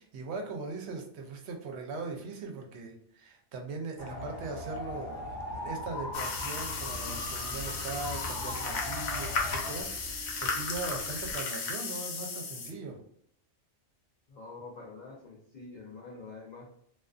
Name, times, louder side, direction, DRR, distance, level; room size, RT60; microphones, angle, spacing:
voice 1, 0.0-5.2 5.5-9.9 10.2-13.0, right 3 dB, 70° right, 2 dB, 0.8 m, -40 dB
sound 1, 4.0-9.8, left 2 dB, 45° left, 0.8 m, -39 dB
sound 2, 6.1-12.7, left 4 dB, 80° left, 0.9 m, -35 dB
sound 3, 6.3-11.4, right 2 dB, 40° right, 0.4 m, -47 dB
voice 2, 14.3-16.7, left 3 dB, 60° left, -2 dB, 0.4 m, -46 dB
2.4 x 2.3 x 2.3 m, 0.67 s
omnidirectional pair, 1.2 m